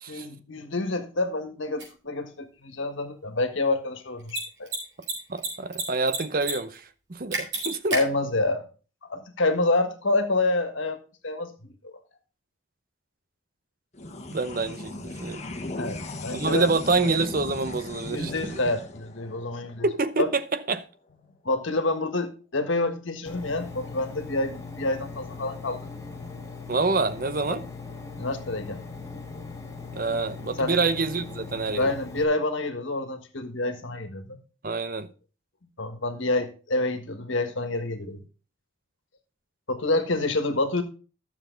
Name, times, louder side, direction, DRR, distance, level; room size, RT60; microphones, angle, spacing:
voice 1, 0.1-4.7 7.9-8.6 9.1-11.0 11.2-11.9 15.8-16.7 18.1-19.8 20.2-20.3 21.4-25.8 27.5-27.6 28.2-28.8 30.6-30.8 31.7-34.4 35.8-38.2 39.7-40.8, left 2 dB, 75° left, 1.6 m, -28 dB
Mechanisms, 1.8-1.9 4.2-4.4 4.7-4.8 5.0-5.8 6.1-6.5 6.8-6.9 7.3-8.0, right 3 dB, 60° right, 4.3 m, -28 dB
voice 2, 5.3-8.0 14.3-15.4 16.3-18.6 19.8-20.8 26.7-27.6 29.9-31.9 34.6-35.1, right 3 dB, 45° right, 0.7 m, -27 dB
sound 1, 13.9-20.7, left 2 dB, 35° left, 1.2 m, -38 dB
Engine, 23.2-32.2, left 4 dB, 15° left, 1.7 m, -40 dB
11.5 x 7.2 x 3.9 m
head